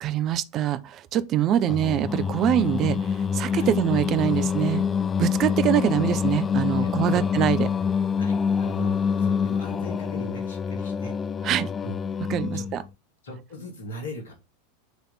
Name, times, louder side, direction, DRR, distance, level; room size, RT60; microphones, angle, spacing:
voice 1, 0.0-4.8 5.2-7.7 11.4-11.7 12.3-12.8, right 11 dB, 40° right, 0.6 m, -24 dB
Singing, 1.7-12.8, left 6 dB, 25° left, 0.3 m, -26 dB
voice 2, 6.8-7.2 8.2-11.1 11.8-12.0 12.5-12.6 13.2-14.3, left 1 dB, 70° left, 2.5 m, -39 dB
8.1 x 3.4 x 4.1 m
figure-of-eight pair, 85°, 0 cm